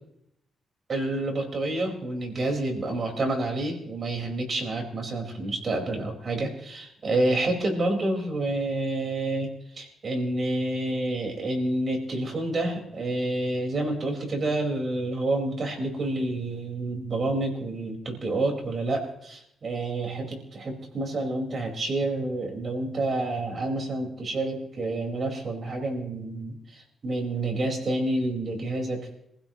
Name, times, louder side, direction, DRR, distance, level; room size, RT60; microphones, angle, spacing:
voice 1, 0.9-9.5 9.8-26.5 27.0-29.1, right 2 dB, 45° right, 2 dB, 4.6 m, -28 dB
27.0 x 16.0 x 3.0 m, 0.75 s
cardioid pair, 85°, 0 cm